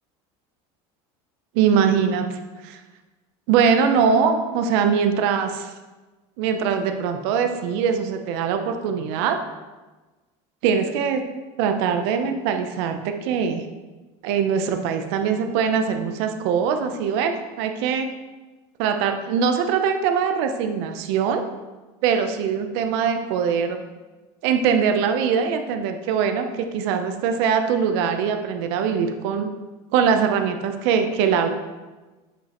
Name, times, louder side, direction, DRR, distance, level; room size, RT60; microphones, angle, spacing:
voice 1, 1.5-2.3 2.6-2.8 3.5-5.7 6.4-9.4 10.6-11.2 11.6-13.6 14.2-18.1 18.8-21.4 22.0-23.8 24.4-29.5 29.9-31.5, right 7 dB, 75° right, 6 dB, 0.7 m, -22 dB
8.0 x 5.2 x 3.0 m, 1.2 s
cardioid pair, 135°, 14 cm